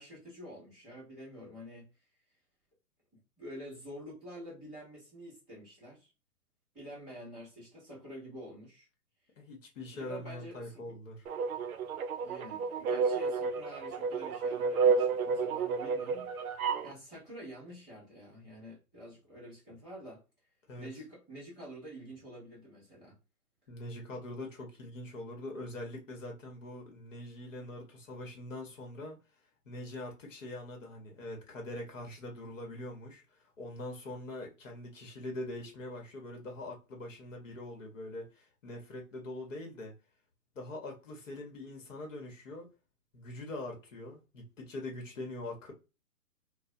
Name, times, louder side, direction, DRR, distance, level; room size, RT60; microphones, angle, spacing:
voice 1, 0.0-1.9 3.1-6.1 6.7-8.9 9.9-11.0 12.2-16.3 16.8-20.2 20.8-23.2, equal, ahead, 0.5 m, -48 dB
voice 2, 9.4-11.2 20.7-20.9 23.7-29.2 29.7-33.2 33.6-39.9 40.5-42.7 43.1-45.7, left 1 dB, 55° left, 0.9 m, -43 dB
sound 1, 11.3-16.9, right 5 dB, 65° right, 0.5 m, -31 dB
2.3 x 2.1 x 2.6 m
hypercardioid pair, 140°, 45 cm